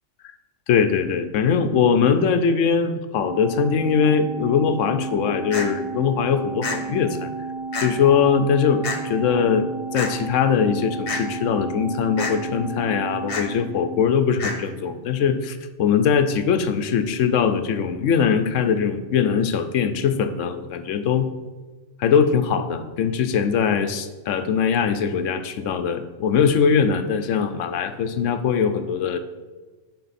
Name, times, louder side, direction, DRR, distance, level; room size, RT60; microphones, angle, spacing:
voice 1, 0.7-7.3 7.8-21.3 22.0-29.2, left 6 dB, 85° left, 9 dB, 1.0 m, -21 dB
Organ, 3.2-14.4, right 4 dB, 25° right, 2.4 m, -33 dB
sound 1, 5.5-5.7 6.6-6.8 7.7-7.9 8.8-9.0 9.9-10.1 11.1-11.2 12.2-12.3 13.3-13.5 14.4-14.6, left 4 dB, 50° left, 1.2 m, -27 dB
11.0 x 4.1 x 4.2 m, 1.3 s
omnidirectional pair, 1.3 m